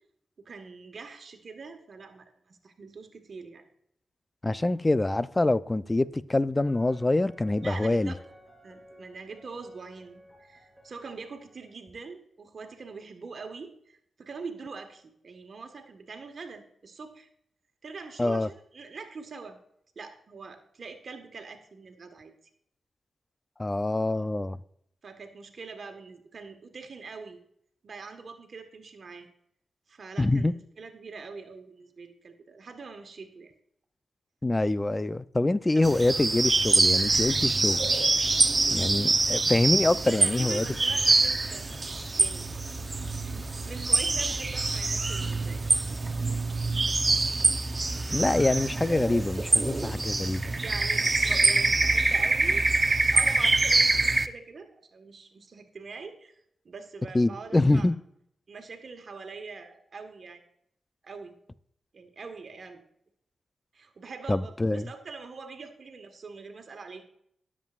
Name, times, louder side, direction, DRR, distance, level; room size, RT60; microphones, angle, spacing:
voice 1, 0.4-3.6 7.6-8.2 8.6-17.3 17.8-19.6 19.9-22.4 25.0-27.4 27.8-29.3 29.9-33.5 35.7-35.8 39.0-39.2 40.0-41.8 42.2-42.5 43.4-45.6 50.6-52.6 53.1-56.3 56.6-57.9 58.5-60.4 61.0-61.3 61.9-62.8 63.7-67.1, right 4 dB, 60° right, 1.5 m, -43 dB
voice 2, 4.4-8.1 18.2-18.5 23.6-24.6 30.2-30.5 34.4-37.8 38.7-40.7 48.1-50.4 57.1-58.0 64.3-64.9, left 2 dB, 25° left, 0.6 m, -25 dB
sound 1, 6.6-11.7, equal, ahead, 4.1 m, -55 dB
sound 2, 35.8-54.3, right 3 dB, 35° right, 0.8 m, -25 dB
19.0 x 7.5 x 2.5 m
supercardioid pair, 45°, 0 cm